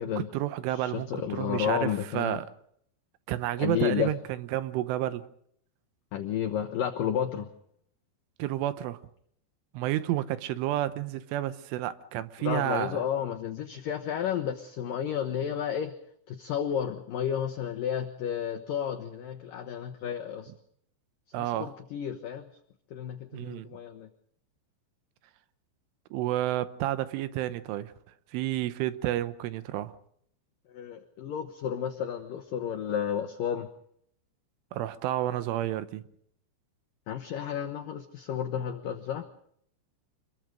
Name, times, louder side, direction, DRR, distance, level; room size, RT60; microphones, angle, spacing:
voice 1, 0.0-2.5 3.3-5.2 8.4-9.0 9.7-13.0 21.3-21.7 23.3-23.7 26.1-27.9 28.3-29.9 34.7-36.0, right 13 dB, 80° right, 3.5 m, -30 dB
voice 2, 0.7-2.4 3.6-4.1 6.1-7.5 12.4-16.0 16.3-20.5 21.4-22.5 22.9-24.1 30.7-33.7 37.1-39.3, left 9 dB, 85° left, 1.9 m, -32 dB
27.0 x 22.0 x 5.1 m
omnidirectional pair, 5.6 m